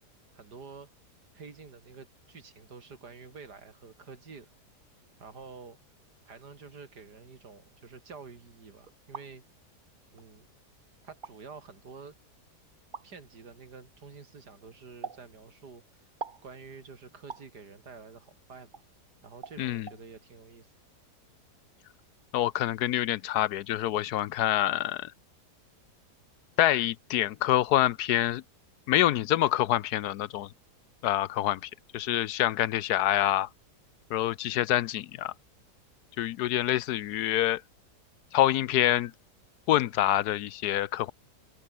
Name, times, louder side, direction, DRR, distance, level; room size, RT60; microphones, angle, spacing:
voice 1, 0.3-0.9 1.3-4.5 5.2-5.8 6.3-9.4 10.1-10.5 11.0-12.2 13.0-16.1 16.4-18.7 19.2-20.7, right 5 dB, 75° right, 3.3 m, -48 dB
sound 1, 8.9-9.3 10.2-10.3 11.1-11.3 12.9-13.1 15.0-15.2 16.2-16.5 17.3-17.5 18.7-18.9 19.4-19.6 19.9-20.0, right 5 dB, 35° right, 1.2 m, -41 dB
voice 2, 19.6-19.9 22.3-25.1 26.6-28.4 28.9-30.5 31.0-33.5 34.1-35.3 36.2-37.6 38.3-39.1 39.7-41.1, left 13 dB, 75° left, 1.1 m, -26 dB
omnidirectional pair, 1.8 m